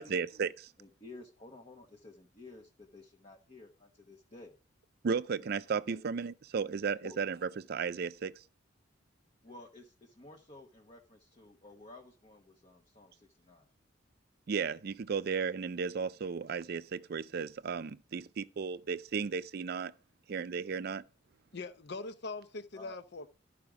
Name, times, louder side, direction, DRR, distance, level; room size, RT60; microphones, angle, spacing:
voice 1, 0.0-0.7 5.0-8.4 14.5-19.9 20.3-21.0, right 5 dB, 55° right, 0.4 m, -34 dB
voice 2, 0.8-4.5 5.3-5.5 5.9-6.0 7.0-7.2 9.4-13.7 22.7-23.0, left 2 dB, 35° left, 1.0 m, -53 dB
voice 3, 21.5-23.3, left 3 dB, 60° left, 0.8 m, -42 dB
12.5 x 5.1 x 4.8 m
head